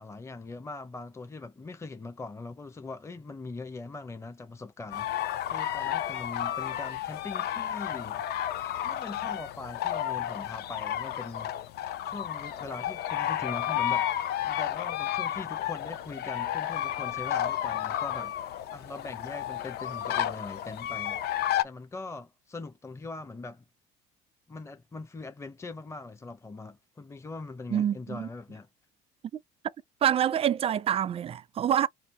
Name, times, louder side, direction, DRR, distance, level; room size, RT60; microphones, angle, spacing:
voice 1, 0.0-8.2 8.8-11.5 12.0-18.4 18.7-23.6 24.5-28.7, left 3 dB, 15° left, 0.6 m, -41 dB
sound 1, 4.9-21.6, left 11 dB, 55° left, 0.5 m, -32 dB
voice 2, 27.7-28.3 30.0-31.9, right 10 dB, 30° right, 0.4 m, -26 dB
2.8 x 2.7 x 4.2 m
supercardioid pair, 80°, 20 cm